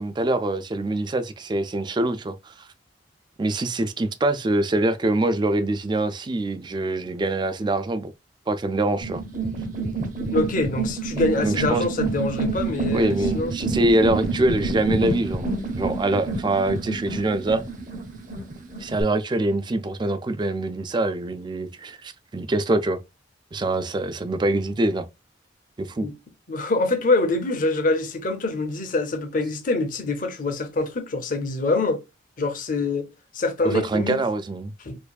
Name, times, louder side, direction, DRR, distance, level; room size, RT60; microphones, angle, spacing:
voice 1, 0.0-2.7 3.4-8.1 8.5-9.2 11.4-11.9 12.9-17.6 18.8-23.0 23.5-25.0 25.8-26.1 33.6-34.7, right 2 dB, 25° right, 0.3 m, -24 dB
sound 1, 9.0-19.0, right 3 dB, 45° right, 0.9 m, -28 dB
voice 2, 10.3-13.5 26.0-26.1 26.5-32.0 32.4-34.2 34.8-35.0, left 2 dB, 45° left, 0.7 m, -25 dB
4.5 x 2.5 x 2.3 m
head